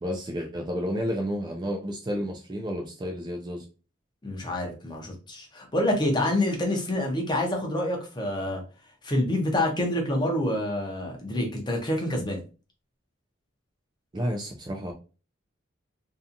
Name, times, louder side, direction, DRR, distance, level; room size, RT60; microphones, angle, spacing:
voice 1, 0.0-3.6 14.1-14.9, equal, 20° right, 1 dB, 0.3 m, -31 dB
voice 2, 4.2-8.6 9.0-12.4, left 1 dB, 20° left, 1 dB, 0.6 m, -27 dB
2.7 x 2.3 x 2.5 m, 0.33 s
head